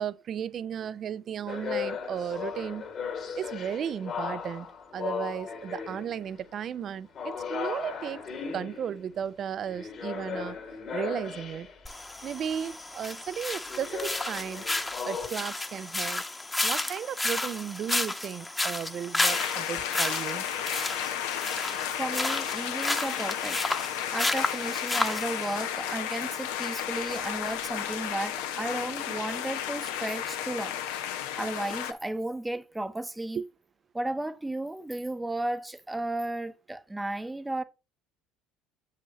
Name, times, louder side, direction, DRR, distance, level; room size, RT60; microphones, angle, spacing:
voice 1, 0.0-2.9 3.3-8.2 8.5-10.6 10.9-11.7 12.2-14.7 15.0-16.2 16.6-20.5 33.3-33.4, right 8 dB, 50° right, 0.4 m, -35 dB
sound 1, 1.5-6.6 7.1-11.9 13.6-15.3, left 6 dB, 50° left, 1.9 m, -37 dB
sound 2, 11.9-25.5, left 2 dB, 15° left, 1.0 m, -32 dB
sound 3, 19.2-31.9, left 10 dB, 80° left, 0.7 m, -33 dB
voice 2, 22.0-23.6 24.1-30.8 31.4-33.4 33.9-37.6, right 1 dB, 10° right, 0.7 m, -34 dB
7.7 x 5.6 x 3.0 m
hypercardioid pair, 65°, 0 cm